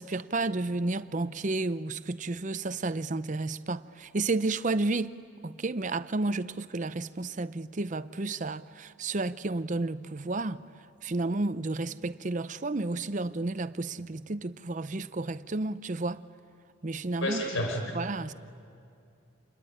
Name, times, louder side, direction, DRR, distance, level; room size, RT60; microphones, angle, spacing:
voice 1, 0.0-5.1 5.4-10.6 11.0-16.2 16.8-17.6 17.9-18.3, right 2 dB, 35° right, 0.6 m, -31 dB
voice 2, 17.2-17.9, left 1 dB, 70° left, 4.9 m, -30 dB
28.0 x 21.0 x 10.0 m
head